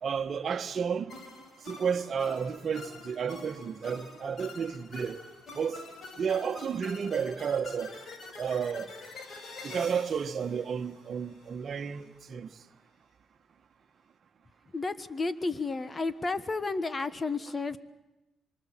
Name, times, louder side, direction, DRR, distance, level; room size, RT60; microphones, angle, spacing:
voice 1, 0.0-1.1 1.7-5.2 5.5-5.8 6.2-7.9 8.4-8.9 9.6-12.5, right 6 dB, 50° right, 1.4 m, -32 dB
sound 1, 1.1-11.5, left 3 dB, 55° left, 4.5 m, -47 dB
voice 2, 14.7-17.8, left 3 dB, 30° left, 1.3 m, -32 dB
26.0 x 24.0 x 7.5 m
cardioid pair, 90°, 0 cm